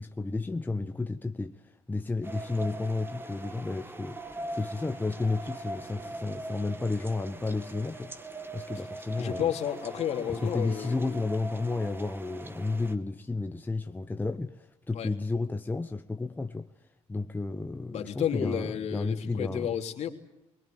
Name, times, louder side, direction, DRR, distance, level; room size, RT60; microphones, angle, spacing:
voice 1, 0.0-4.2 4.5-8.1 8.5-9.5 10.3-16.7 17.1-19.7, left 3 dB, 15° left, 1.0 m, -32 dB
sound 1, 2.2-12.9, right 2 dB, 15° right, 1.8 m, -41 dB
voice 2, 9.2-11.3 14.9-15.1 17.9-20.1, left 9 dB, 60° left, 3.2 m, -32 dB
22.5 x 20.5 x 9.1 m
supercardioid pair, 80°, 13 cm